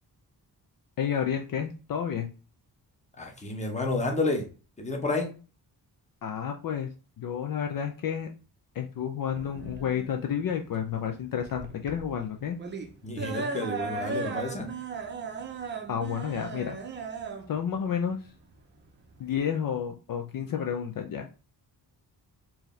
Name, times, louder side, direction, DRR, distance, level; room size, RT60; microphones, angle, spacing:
voice 1, 1.0-2.3 6.2-6.9 7.2-8.3 8.7-12.6 15.9-16.8 17.5-18.2 19.2-21.3, left 8 dB, 55° left, 4 dB, 0.5 m, -30 dB
voice 2, 3.2-4.5 4.8-5.3 13.0-14.7, left 2 dB, 15° left, 2 dB, 0.9 m, -30 dB
sound 1, 9.4-19.4, right 4 dB, 30° right, 0.5 m, -37 dB
4.6 x 2.8 x 3.1 m, 0.34 s
wide cardioid pair, 160°, 40 cm